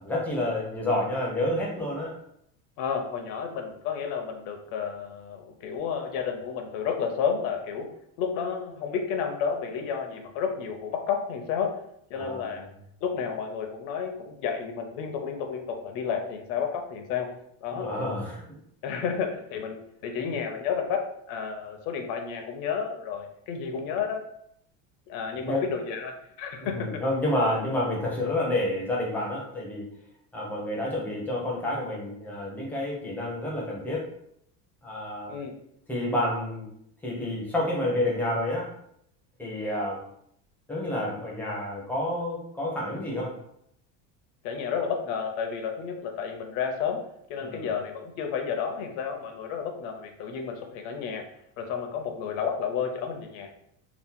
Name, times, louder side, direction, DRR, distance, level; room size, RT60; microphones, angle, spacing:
voice 1, 0.0-2.2 12.1-12.6 17.7-18.4 20.2-20.3 25.4-25.6 26.6-29.9 30.3-34.0 34.8-35.4 35.9-36.7 37.0-38.7 39.4-40.0 40.7-43.4 47.4-47.7, left 1 dB, 5° left, -4 dB, 0.4 m, -29 dB
voice 2, 2.8-7.9 8.2-11.8 12.1-12.7 13.0-17.3 17.6-17.9 18.8-24.3 25.1-27.0 35.3-35.5 44.4-47.0 47.3-51.2 51.6-53.5, left 6 dB, 60° left, 4 dB, 0.6 m, -31 dB
2.8 x 2.0 x 3.5 m, 0.72 s
cardioid pair, 170°, 38 cm